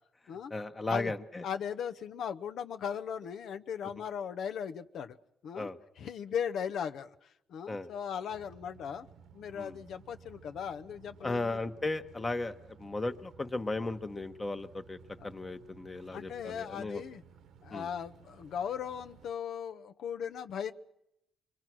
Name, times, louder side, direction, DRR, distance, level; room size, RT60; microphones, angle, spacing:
voice 1, 0.5-1.4 5.5-5.8 7.7-7.9 9.5-9.8 11.2-15.0 15.2-17.0 17.7-17.9, left 2 dB, 25° left, 8 dB, 1.2 m, -35 dB
voice 2, 1.4-5.2 5.4-5.7 6.0-7.1 7.5-9.1 9.3-11.7 16.1-17.2 17.6-20.7, left 8 dB, 70° left, 9 dB, 0.9 m, -38 dB
sound 1, 8.3-19.3, right 7 dB, 80° right, 1.2 m, -57 dB
25.5 x 21.5 x 6.2 m, 0.83 s
cardioid pair, 90°, 0 cm